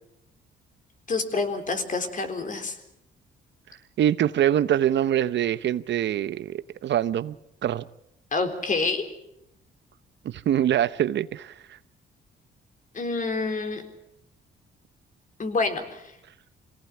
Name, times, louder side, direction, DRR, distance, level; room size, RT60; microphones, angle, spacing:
voice 1, 1.1-2.8 8.3-9.0 12.9-13.8 15.4-16.0, left 3 dB, 40° left, 3.9 m, -27 dB
voice 2, 4.0-7.4 7.6-7.9 10.2-11.5, right 11 dB, 65° right, 0.8 m, -24 dB
23.5 x 18.0 x 8.4 m
cardioid pair, 90°, 20 cm